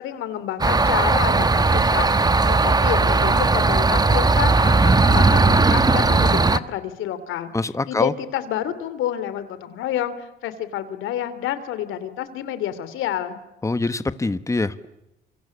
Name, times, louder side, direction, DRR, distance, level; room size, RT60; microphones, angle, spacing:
voice 1, 0.0-2.1 2.5-7.5 7.9-13.4, left 11 dB, 90° left, 13 dB, 2.8 m, -29 dB
sound 1, 0.6-6.6, right 3 dB, 20° right, 1.2 m, -17 dB
voice 2, 7.5-8.1 13.6-14.9, left 3 dB, 15° left, 13 dB, 1.2 m, -24 dB
28.0 x 25.5 x 8.4 m, 0.89 s
cardioid pair, 90°, 20 cm